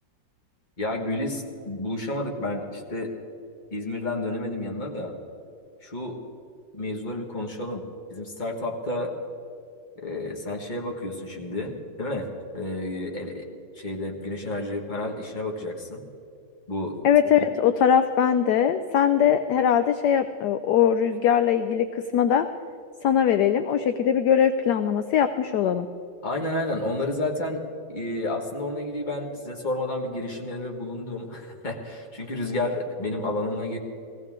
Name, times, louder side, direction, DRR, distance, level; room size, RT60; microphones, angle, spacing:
voice 1, 0.8-3.1 3.7-5.1 5.8-6.2 6.7-7.8 8.1-9.1 9.9-12.3 12.5-13.5 13.7-16.0 16.7-17.0 26.2-27.6 27.9-33.8, left 2 dB, 25° left, 0 dB, 1.7 m, -30 dB
voice 2, 17.0-22.5 23.0-25.9, left 8 dB, 70° left, 9 dB, 1.0 m, -21 dB
20.5 x 15.5 x 3.7 m, 2.5 s
omnidirectional pair, 2.0 m